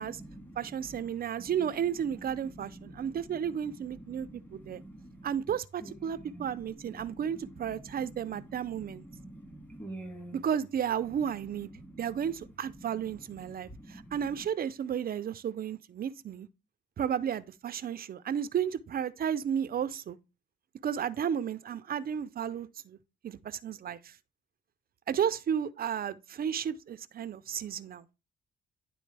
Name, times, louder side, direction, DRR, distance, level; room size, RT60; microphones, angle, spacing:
voice 1, 0.0-1.1 1.4-1.7 2.1-5.4 5.8-10.4 11.6-12.2 12.7-13.0 13.4-14.2, right 1 dB, 10° left, 2.2 m, -48 dB
voice 2, 0.6-4.8 5.2-9.1 10.3-11.7 12.0-16.5 17.0-20.2 20.8-23.0 23.2-24.2 25.1-28.0, right 8 dB, 50° right, 0.6 m, -33 dB
10.5 x 3.8 x 3.3 m
cardioid pair, 90°, 20 cm